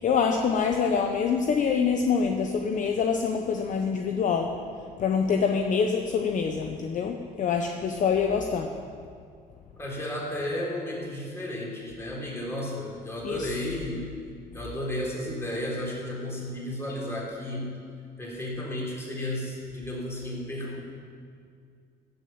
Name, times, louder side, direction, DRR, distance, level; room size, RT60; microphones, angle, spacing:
voice 1, 0.0-4.5 5.0-8.7 13.2-13.5, left 6 dB, 50° left, 3 dB, 0.9 m, -25 dB
voice 2, 9.8-14.1 14.5-17.8 18.2-20.8, left 1 dB, 15° left, -4 dB, 3.7 m, -33 dB
14.5 x 6.7 x 7.2 m, 2.2 s
cardioid pair, 110°, 17 cm